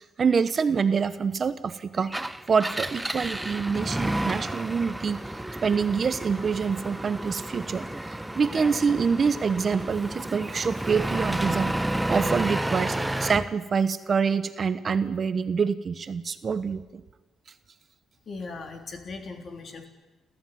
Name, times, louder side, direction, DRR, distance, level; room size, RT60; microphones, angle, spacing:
voice 1, 0.2-2.1 2.5-5.2 5.6-7.8 8.3-11.7 12.1-17.0, right 5 dB, 45° right, 12 dB, 1.2 m, -26 dB
Engine, 2.0-13.5, right 1 dB, 10° right, 1.0 m, -31 dB
voice 2, 18.3-19.9, left 3 dB, 45° left, 5 dB, 3.6 m, -38 dB
29.0 x 14.0 x 9.5 m, 1.1 s
cardioid pair, 90°, 0 cm